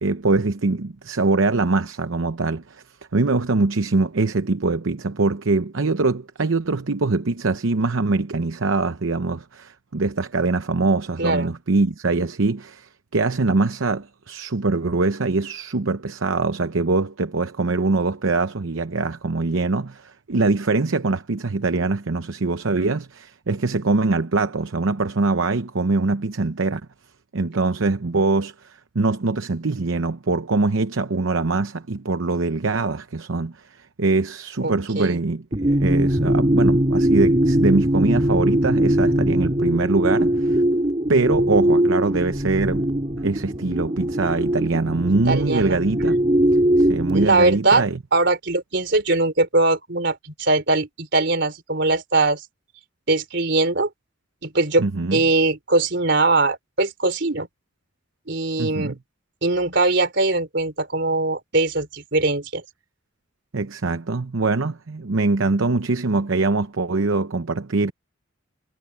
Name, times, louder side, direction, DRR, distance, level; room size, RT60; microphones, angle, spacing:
voice 1, 0.0-2.8 3.1-26.8 27.3-40.6 41.1-42.9 43.2-46.2 46.8-48.0 54.8-55.2 58.6-58.9 63.5-67.9, right 3 dB, 70° right, 0.8 m, -23 dB
voice 2, 11.2-11.5 34.6-35.2 45.3-45.8 47.1-47.9 48.1-52.4 53.1-53.9 54.4-54.9 55.1-57.5 58.3-59.0 59.4-62.6, right 2 dB, 55° right, 3.8 m, -21 dB
sound 1, 35.5-47.2, right 1 dB, 30° right, 2.7 m, -20 dB
head